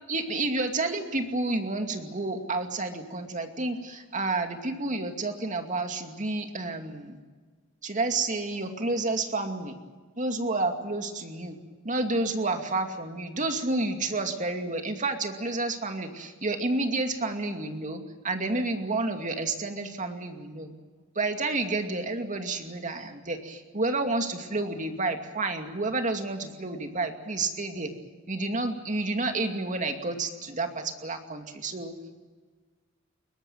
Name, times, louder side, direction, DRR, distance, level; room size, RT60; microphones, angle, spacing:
voice 1, 0.1-7.2 7.8-9.7 10.2-11.6 11.8-20.7 21.2-27.9 28.3-31.9, right 2 dB, 40° right, 5 dB, 2.5 m, -30 dB
22.0 x 19.0 x 9.2 m, 1.4 s
head